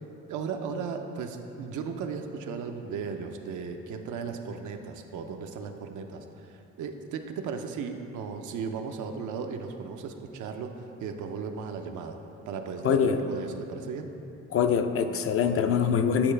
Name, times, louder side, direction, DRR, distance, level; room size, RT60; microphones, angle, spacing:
voice 1, 0.3-12.2 12.5-14.1, right 5 dB, 75° right, 5 dB, 0.6 m, -36 dB
voice 2, 12.8-13.2 14.5-16.3, left 7 dB, 50° left, 7 dB, 0.4 m, -24 dB
8.7 x 4.6 x 3.3 m, 2.9 s
cardioid pair, 90°, 30 cm